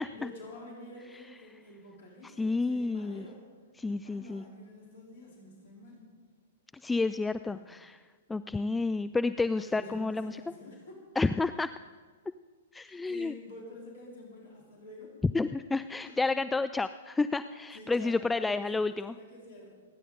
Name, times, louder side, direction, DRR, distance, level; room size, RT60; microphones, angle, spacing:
voice 1, 0.1-3.4 3.8-6.1 7.5-7.6 9.6-11.1 12.9-15.3 16.0-16.4 17.7-19.7, left 1 dB, 55° left, -2 dB, 4.0 m, -48 dB
voice 2, 2.4-3.2 3.8-4.4 6.8-8.0 8.3-10.4 11.2-11.7 12.7-13.3 15.3-19.1, left 3 dB, 10° left, 12 dB, 0.3 m, -30 dB
27.0 x 10.0 x 3.9 m, 1.5 s
figure-of-eight pair, 110°, 0 cm